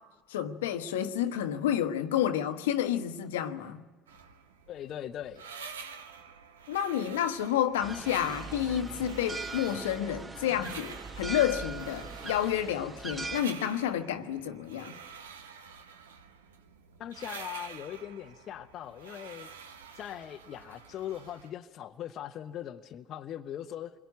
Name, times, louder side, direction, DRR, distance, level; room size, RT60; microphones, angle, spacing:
voice 1, 0.3-3.8 6.7-15.0, left 10 dB, 75° left, 1.2 m, -30 dB
sound 1, 4.1-21.5, right 6 dB, 80° right, 1.2 m, -48 dB
voice 2, 4.7-5.4 17.0-19.5 19.9-23.9, left 10 dB, 50° left, 0.9 m, -40 dB
sound 2, 7.8-13.4, right 3 dB, 25° right, 1.8 m, -40 dB
27.5 x 22.5 x 9.5 m
figure-of-eight pair, 60°, 0 cm